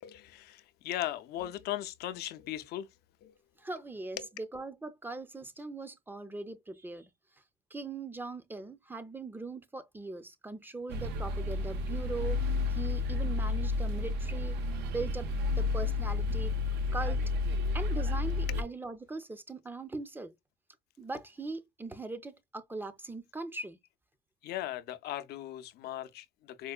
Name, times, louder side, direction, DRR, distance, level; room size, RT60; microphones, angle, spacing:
voice 1, 0.0-2.9 3.2-3.3 4.2-4.3 18.5-18.6 24.4-26.7, left 13 dB, 75° left, 0.5 m, -38 dB
voice 2, 3.6-7.1 7.7-12.4 12.7-14.6 14.9-15.3 15.6-16.5 16.9-17.2 17.7-20.3 21.0-23.8, right 3 dB, 10° right, 0.4 m, -40 dB
sound 1, 10.9-18.6, left 3 dB, 80° right, 0.6 m, -31 dB
4.5 x 2.1 x 2.3 m
cardioid pair, 110°, 17 cm